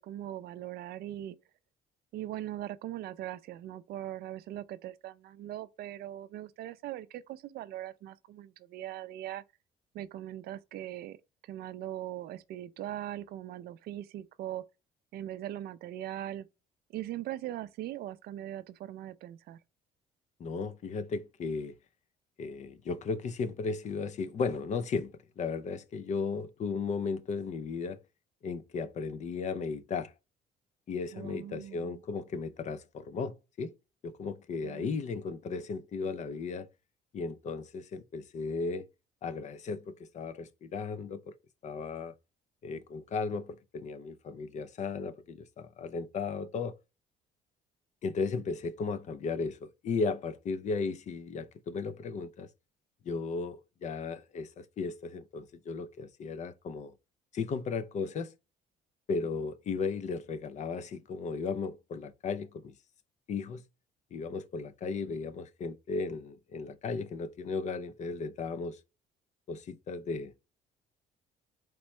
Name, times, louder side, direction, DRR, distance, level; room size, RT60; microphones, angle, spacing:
voice 1, 0.0-1.4 2.1-9.4 9.9-11.2 11.5-14.6 15.1-16.5 16.9-19.6 31.1-32.0 34.6-34.9, right 13 dB, 65° right, 0.4 m, -40 dB
voice 2, 20.4-21.8 22.4-28.0 28.4-30.1 30.9-33.7 34.0-36.7 37.1-38.9 39.2-41.4 41.6-42.1 42.6-46.8 48.0-52.5 53.0-56.9 57.3-58.3 59.1-62.7 63.3-63.6 64.1-68.8 69.5-70.5, left 4 dB, 45° left, 0.5 m, -35 dB
4.5 x 3.1 x 3.1 m
cardioid pair, 110°, 17 cm